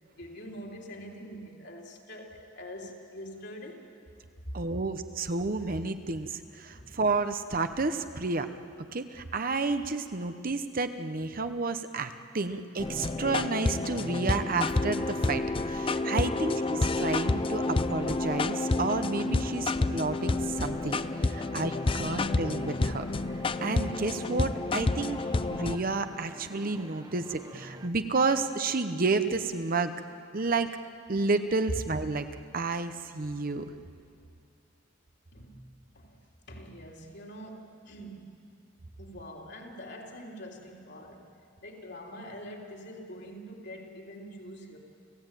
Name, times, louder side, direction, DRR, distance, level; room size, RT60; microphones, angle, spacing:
voice 1, 0.1-3.8 6.7-7.0 13.2-13.3 16.3-16.4 31.7-31.8 35.3-36.2 36.5-38.4 39.0-41.3 41.6-44.8, equal, 60° left, -1 dB, 3.4 m, -44 dB
voice 2, 4.5-8.5 8.8-23.2 23.6-25.2 25.5-29.9 30.3-30.7 31.1-32.3 32.5-33.6, right 3 dB, 45° right, 9 dB, 0.9 m, -31 dB
sound 1, 12.8-25.8, left 3 dB, 25° left, 0.5 m, -29 dB
sound 2, 12.8-27.9, right 1 dB, 20° right, 0.9 m, -48 dB
29.5 x 15.5 x 9.1 m, 2.5 s
head